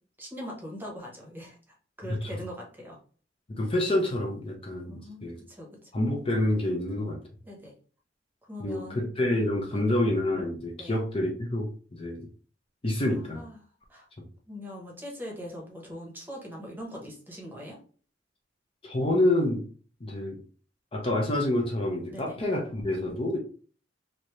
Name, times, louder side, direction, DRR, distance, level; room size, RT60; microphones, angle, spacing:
voice 1, 0.2-3.0 4.9-5.9 7.4-7.7 8.4-9.1 9.7-10.0 10.8-11.0 13.0-13.6 13.9-14.1 14.5-17.8 22.1-22.4, equal, 10° right, -1 dB, 1.0 m, -42 dB
voice 2, 3.5-5.4 5.9-7.2 8.6-12.3 12.8-13.4 18.8-19.6 20.0-20.4 20.9-23.4, left 1 dB, 30° left, 0 dB, 0.6 m, -27 dB
3.2 x 2.7 x 3.0 m, 0.41 s
head